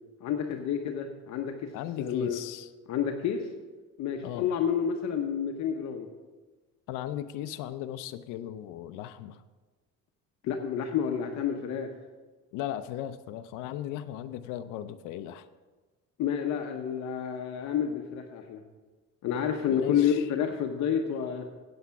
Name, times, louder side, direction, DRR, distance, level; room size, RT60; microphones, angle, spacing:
voice 1, 0.2-1.7 2.0-2.4 2.9-3.5 4.0-6.1 10.4-11.9 16.2-18.6 19.2-21.5, left 8 dB, 65° left, 4 dB, 0.9 m, -29 dB
voice 2, 1.7-2.7 4.2-4.5 6.9-9.4 12.5-15.5 19.7-20.3, left 12 dB, 85° left, 10 dB, 0.6 m, -37 dB
8.6 x 8.0 x 5.8 m, 1.3 s
cardioid pair, 105°, 31 cm